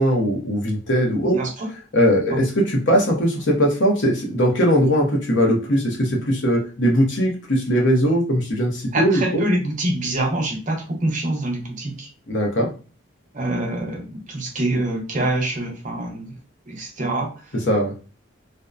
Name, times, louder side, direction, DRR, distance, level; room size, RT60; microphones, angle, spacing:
voice 1, 0.0-1.4 1.9-9.4 12.3-12.7 17.7-17.9, equal, 70° left, 0 dB, 0.8 m, -20 dB
voice 2, 1.3-1.7 2.3-2.4 8.9-12.1 13.3-16.4 16.7-17.4, right 1 dB, 40° right, 1 dB, 0.6 m, -25 dB
2.6 x 2.1 x 2.3 m, 0.34 s
head